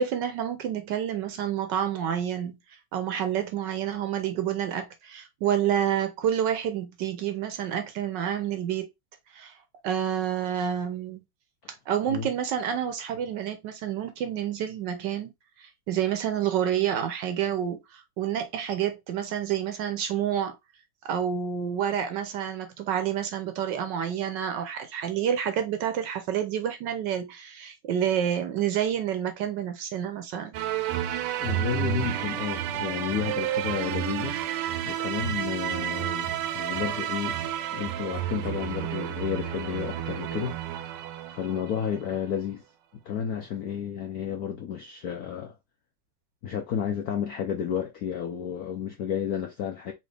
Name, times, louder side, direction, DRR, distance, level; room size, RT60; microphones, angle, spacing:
voice 1, 0.0-2.6 2.9-8.9 9.3-9.5 9.8-11.2 11.9-15.3 15.6-20.5 21.0-30.6, right 9 dB, 70° right, 1.1 m, -28 dB
sound 1, 30.5-41.9, right 11 dB, 90° right, 1.5 m, -31 dB
voice 2, 31.4-34.4 34.8-40.6 41.3-42.6 43.0-45.5 46.4-49.9, left 8 dB, 80° left, 0.8 m, -31 dB
4.2 x 2.9 x 3.2 m
omnidirectional pair, 2.4 m